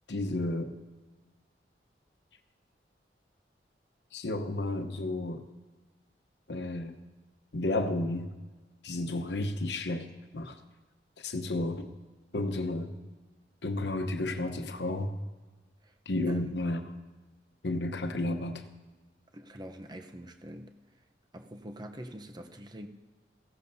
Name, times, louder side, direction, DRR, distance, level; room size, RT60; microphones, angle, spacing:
voice 1, 0.1-0.7 4.1-5.4 6.5-7.0 7.5-8.3 8.8-10.1 10.3-10.6 11.2-11.9 12.3-12.9 13.6-15.1 16.1-16.9 17.6-18.6, left 2 dB, 75° left, 7 dB, 1.0 m, -32 dB
voice 2, 19.3-20.7 21.3-22.9, equal, 25° right, 6 dB, 0.8 m, -44 dB
17.5 x 16.0 x 2.7 m, 1.2 s
head